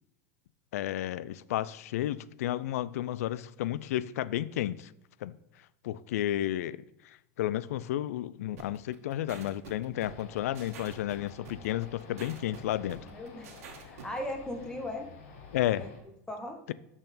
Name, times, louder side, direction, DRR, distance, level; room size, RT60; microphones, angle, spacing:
voice 1, 0.7-4.9 5.2-5.3 5.8-13.1 15.5-15.8, left 13 dB, 85° left, 0.4 m, -32 dB
sound 1, 8.6-14.2, right 6 dB, 80° right, 1.4 m, -48 dB
sound 2, 9.9-16.0, left 4 dB, 70° left, 1.6 m, -51 dB
voice 2, 13.1-13.5 13.8-15.1 15.7-15.9 16.3-16.6, left 1 dB, 10° left, 0.9 m, -38 dB
6.5 x 6.1 x 4.1 m
supercardioid pair, 145°, 8 cm